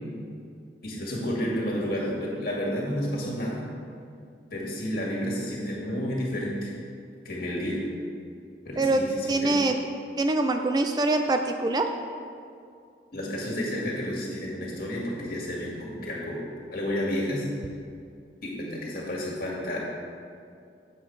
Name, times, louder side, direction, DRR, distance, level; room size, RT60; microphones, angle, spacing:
voice 1, 0.8-3.6 4.5-6.7 7.2-7.8 8.7-9.5 13.1-16.4 16.7-17.4 18.4-19.8, equal, 55° left, -4 dB, 2.1 m, -31 dB
voice 2, 9.3-9.8 10.2-11.9, right 2 dB, 25° right, 5 dB, 0.3 m, -24 dB
8.0 x 7.1 x 4.8 m, 2.3 s
head